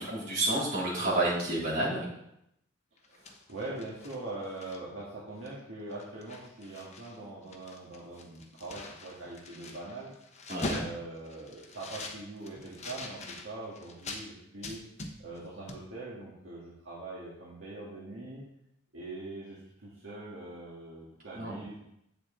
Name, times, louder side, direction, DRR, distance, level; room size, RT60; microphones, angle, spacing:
voice 1, 0.0-2.1 10.5-10.9 21.4-21.6, right 1 dB, 45° right, -8 dB, 3.6 m, -30 dB
sound 1, 3.0-5.0 5.5-5.6 5.9-7.2 7.4-14.3 14.6-15.4 15.7-15.8, left 2 dB, 35° left, 1.0 m, -43 dB
voice 2, 3.1-10.1 10.6-14.8 15.2-18.4 18.9-21.8, right 2 dB, 70° right, -7 dB, 2.0 m, -42 dB
7.8 x 7.2 x 3.9 m, 0.79 s
head